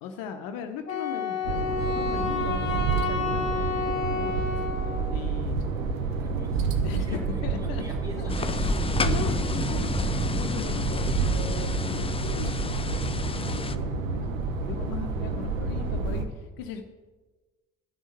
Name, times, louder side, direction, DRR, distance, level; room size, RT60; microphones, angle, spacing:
voice 1, 0.0-5.6 6.0-6.2 6.8-7.8 8.2-8.3 9.0-9.9 10.3-16.8, left 7 dB, 60° left, 6 dB, 0.9 m, -39 dB
Wind instrument woodwind instrument, 0.9-5.1, left 5 dB, 85° left, 0.7 m, -30 dB
sound 1, 1.4-16.2, right 4 dB, 75° right, 0.9 m, -29 dB
voice 2, 6.2-6.6 7.0-9.6, left 1 dB, 10° right, -2 dB, 3.8 m, -44 dB
sound 2, 8.3-13.8, left 4 dB, 15° left, 0.5 m, -31 dB
11.0 x 6.3 x 7.9 m, 1.3 s
figure-of-eight pair, 45°, 39 cm